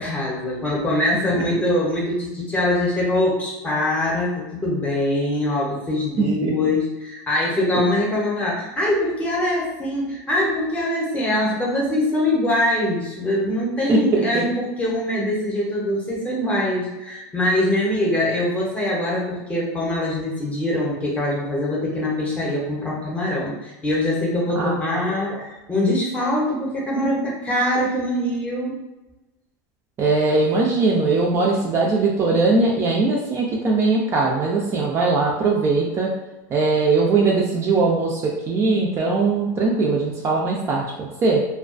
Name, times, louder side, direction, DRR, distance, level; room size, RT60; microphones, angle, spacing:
voice 1, 0.0-28.8, left 1 dB, 15° left, -4 dB, 0.7 m, -23 dB
voice 2, 6.2-6.5 13.9-14.4 24.6-24.8 25.3-25.4 30.0-36.1 36.5-41.4, right 3 dB, 25° right, -2 dB, 0.3 m, -20 dB
2.3 x 2.2 x 2.4 m, 1.0 s
supercardioid pair, 135°, 10 cm